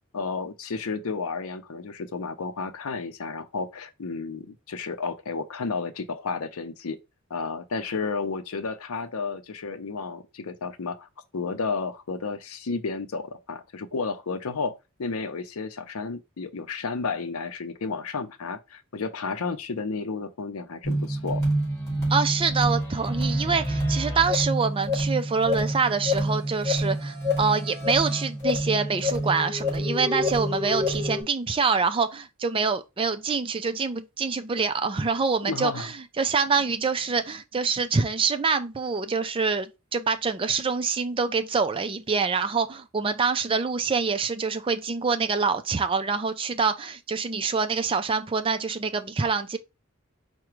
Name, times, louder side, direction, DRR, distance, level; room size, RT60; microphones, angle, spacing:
voice 1, 0.1-7.0 7.3-11.1 11.3-14.7 15.0-21.4 35.4-35.9, left 4 dB, 80° left, 0.6 m, -32 dB
sound 1, 20.8-31.2, equal, 15° left, 2.8 m, -27 dB
voice 2, 22.1-49.6, right 5 dB, 25° right, 0.4 m, -26 dB
4.9 x 2.2 x 4.4 m
head